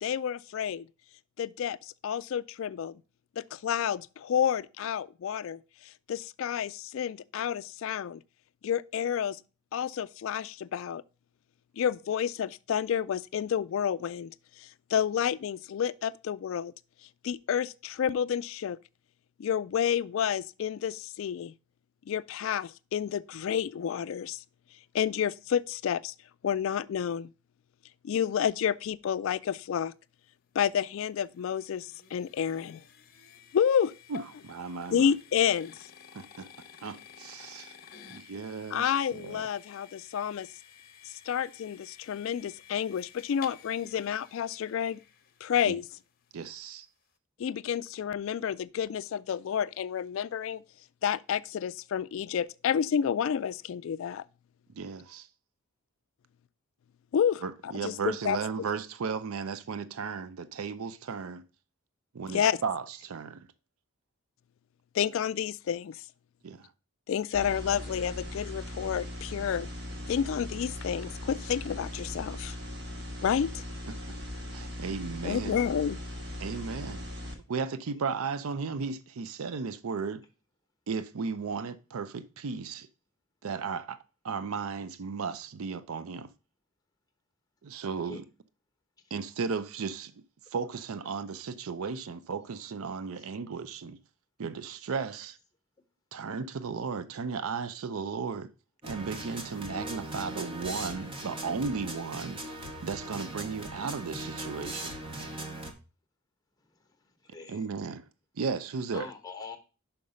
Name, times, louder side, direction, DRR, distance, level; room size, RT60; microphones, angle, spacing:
voice 1, 0.0-0.9 1.4-1.8 2.0-3.0 3.4-5.6 6.1-8.2 8.6-9.4 9.7-11.0 11.8-14.3 14.6-16.7 17.2-18.8 19.4-21.5 22.1-24.4 24.9-26.1 26.4-27.3 28.0-29.9 30.6-32.8 33.5-33.9 34.9-35.9 38.7-40.5 41.1-45.0 45.4-45.8 47.4-50.6 51.0-54.2 57.1-58.4 62.3-62.6 64.9-66.0 67.1-69.7 70.1-72.6 73.2-73.6 75.2-76.0, left 8 dB, 65° left, 0.3 m, -30 dB
sound 1, 30.7-45.9, left 7 dB, 40° left, 0.9 m, -52 dB
voice 2, 34.1-35.1 36.1-36.5 36.8-37.8 38.1-39.4 45.7-45.8 46.3-46.9 54.7-55.3 57.4-61.4 62.1-63.5 66.4-66.7 73.9-74.0 74.5-75.6 76.4-77.0 77.5-80.2 80.9-82.9 83.4-84.0 84.2-86.3 87.6-88.2 89.1-90.1 90.5-94.0 94.4-95.4 96.1-98.5 98.8-102.4 102.8-105.0 107.5-108.1 108.4-109.1, right 5 dB, 80° right, 0.5 m, -35 dB
sound 2, 67.3-77.3, left 1 dB, 50° right, 1.6 m, -39 dB
sound 3, 98.8-105.7, right 1 dB, 25° right, 0.8 m, -39 dB
voice 3, 106.7-107.7 108.9-109.6, left 4 dB, 15° left, 1.1 m, -43 dB
5.8 x 5.4 x 4.9 m
head